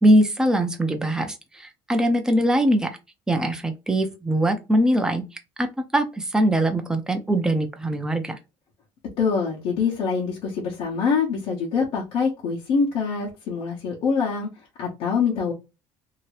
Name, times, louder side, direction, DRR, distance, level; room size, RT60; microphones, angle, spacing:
voice 1, 0.0-2.9 3.3-5.2 5.6-8.4, right 1 dB, 5° right, 0.6 m, -22 dB
voice 2, 9.2-14.5 14.8-15.5, left 5 dB, 70° left, 1.1 m, -24 dB
2.9 x 2.7 x 3.1 m
cardioid pair, 130°, 10 cm